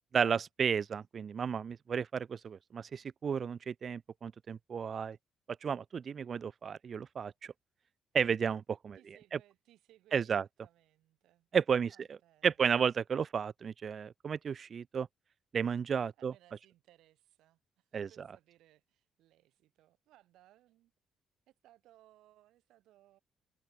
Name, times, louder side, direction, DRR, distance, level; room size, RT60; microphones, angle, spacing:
voice 1, 0.1-5.2 5.6-7.3 8.1-9.0 10.1-10.4 11.5-11.9 12.4-15.1 15.5-16.3 17.9-18.1, right 7 dB, 50° right, 0.8 m, -32 dB
voice 2, 8.9-12.6 16.2-20.9 21.5-23.2, right 14 dB, 85° right, 7.2 m, -65 dB
cardioid pair, 90°, 0 cm